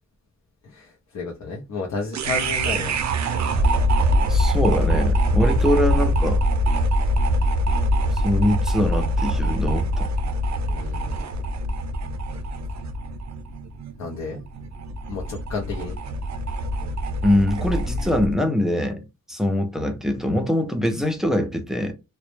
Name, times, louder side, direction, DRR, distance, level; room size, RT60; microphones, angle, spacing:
voice 1, 0.6-3.0 5.5-5.6 10.7-11.4 14.0-14.4 15.1-16.0, left 4 dB, 70° left, 0.5 m, -32 dB
sound 1, 2.1-18.3, equal, 70° right, 0.4 m, -23 dB
voice 2, 4.3-6.4 8.1-10.1 17.2-21.9, left 1 dB, ahead, 0.4 m, -23 dB
2.0 x 2.0 x 3.0 m
wide cardioid pair, 150°, 29 cm